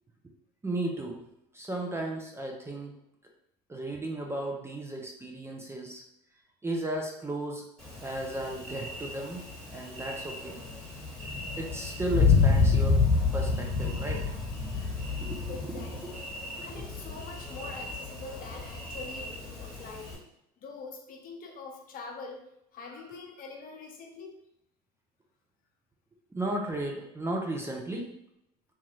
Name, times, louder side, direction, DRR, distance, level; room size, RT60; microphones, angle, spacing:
voice 1, 0.6-1.2 1.5-2.9 3.7-6.0 6.6-7.7 8.0-9.4 9.7-10.6 11.6-13.0 13.3-14.4 15.2-15.8 26.3-28.1, right 1 dB, 10° right, 1 dB, 0.5 m, -34 dB
Thunder, 7.8-20.2, left 4 dB, 5° left, 1.3 m, -29 dB
voice 2, 15.5-16.2 16.6-20.1 20.6-22.4 22.7-24.4, left 4 dB, 45° left, 2 dB, 0.7 m, -44 dB
2.8 x 2.3 x 3.1 m, 0.78 s
hypercardioid pair, 80°, 21 cm